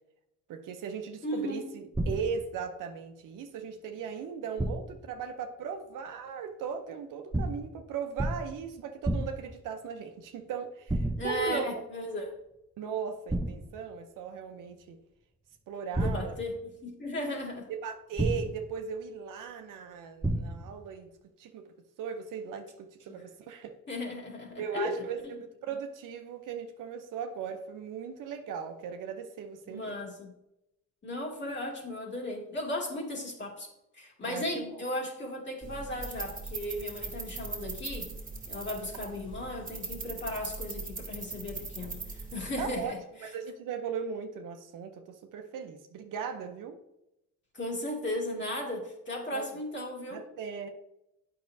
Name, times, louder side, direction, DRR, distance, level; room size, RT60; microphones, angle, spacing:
voice 1, 0.5-11.7 12.8-15.0 15.7-16.3 17.7-21.1 21.4-21.7 22.0-23.7 24.6-29.9 34.2-34.5 42.6-42.9 43.2-46.8 49.3-49.4 50.1-50.7, right 6 dB, 85° right, 0.7 m, -38 dB
voice 2, 1.2-1.6 11.2-12.3 15.9-16.5 16.8-17.7 23.9-24.9 25.2-25.4 29.7-30.3 31.0-33.7 33.9-38.1 38.4-43.0 47.5-50.2, left 1 dB, 35° left, 2.2 m, -36 dB
sound 1, 1.9-2.5 4.6-5.1 7.3-7.8 8.2-8.6 9.0-9.6 10.9-11.5 13.3-13.8 15.9-16.6 18.2-18.7 20.2-20.8, right 1 dB, 10° right, 0.7 m, -31 dB
sound 2, 35.6-42.9, right 3 dB, 25° right, 1.8 m, -40 dB
8.4 x 5.8 x 2.6 m
cardioid pair, 90°, 31 cm